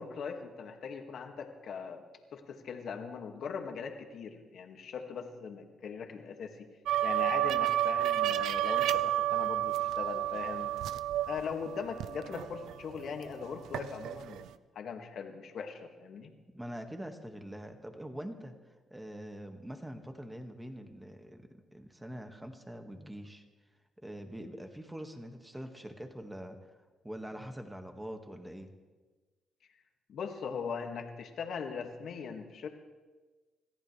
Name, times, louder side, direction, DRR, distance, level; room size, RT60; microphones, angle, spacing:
voice 1, 0.0-2.0 2.3-6.7 7.0-10.7 11.2-14.5 14.8-16.3 30.1-32.7, left 6 dB, 65° left, 3 dB, 2.1 m, -40 dB
sound 1, 6.9-13.1 13.4-14.5, right 12 dB, 80° right, 0.5 m, -31 dB
voice 2, 16.5-23.4 24.0-26.7 27.0-28.7, equal, 10° right, 5 dB, 1.9 m, -44 dB
27.0 x 14.5 x 3.4 m, 1.3 s
cardioid pair, 90°, 0 cm